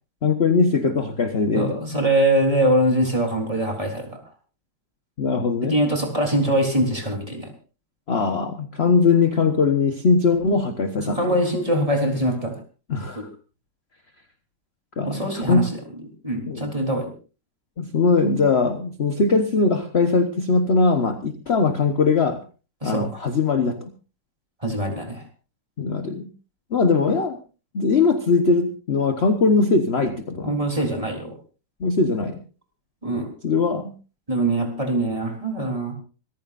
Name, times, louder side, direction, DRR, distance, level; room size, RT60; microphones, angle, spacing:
voice 1, 0.2-1.8 5.2-5.7 8.1-11.5 12.9-13.2 15.0-15.7 16.5-16.7 17.8-22.4 22.8-23.9 25.8-26.3 26.7-27.4 27.7-30.6 31.8-32.4 33.4-33.9, left 4 dB, 35° left, 7 dB, 1.1 m, -21 dB
voice 2, 1.5-4.1 5.6-7.5 11.0-12.6 13.1-13.3 15.1-15.7 16.2-17.1 22.8-23.2 24.6-25.2 30.4-31.4 33.0-33.3 34.3-35.9, right 1 dB, 15° right, 2 dB, 3.7 m, -23 dB
26.0 x 15.0 x 2.6 m, 0.35 s
omnidirectional pair, 2.4 m